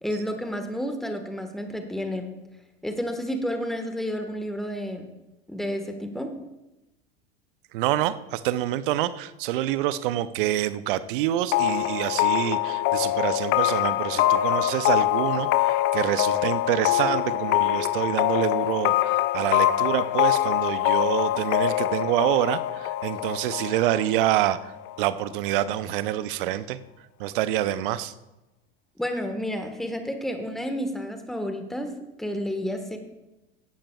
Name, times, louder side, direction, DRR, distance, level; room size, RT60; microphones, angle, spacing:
voice 1, 0.0-2.3 2.8-5.1 5.5-6.3 29.0-31.9 32.2-33.0, equal, ahead, 6 dB, 1.4 m, -30 dB
voice 2, 7.7-24.7 25.0-26.8 27.2-28.1, right 13 dB, 60° right, 15 dB, 0.7 m, -27 dB
sound 1, 11.5-25.0, left 14 dB, 40° left, 0.6 m, -24 dB
16.5 x 11.5 x 2.4 m, 0.98 s
figure-of-eight pair, 80°, 31 cm